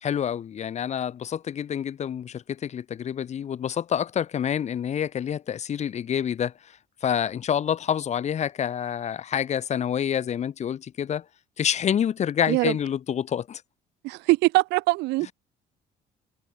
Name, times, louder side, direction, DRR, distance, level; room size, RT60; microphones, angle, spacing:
voice 1, 0.0-6.7 7.0-11.2 11.6-13.6, left 9 dB, 40° left, 0.9 m, -27 dB
voice 2, 14.0-15.3, right 21 dB, 90° right, 0.8 m, -22 dB
cardioid pair, 110°, 17 cm